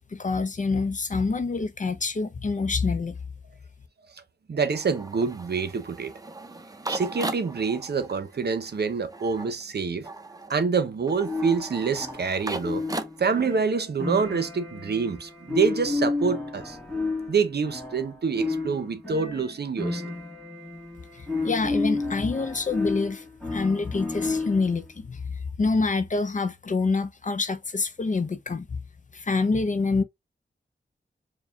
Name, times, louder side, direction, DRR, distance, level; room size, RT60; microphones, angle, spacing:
voice 1, 0.1-3.2 21.1-28.8 29.1-30.0, left 4 dB, 40° left, 0.5 m, -26 dB
voice 2, 4.5-6.1 6.9-10.1 10.5-12.8 13.2-16.8 17.3-20.0, right 5 dB, 60° right, 0.7 m, -26 dB
sound 1, 4.7-13.6, right 2 dB, 20° right, 0.6 m, -38 dB
sound 2, 11.2-24.8, left 3 dB, 5° left, 2.1 m, -31 dB
4.7 x 2.2 x 3.3 m
wide cardioid pair, 85°, 19 cm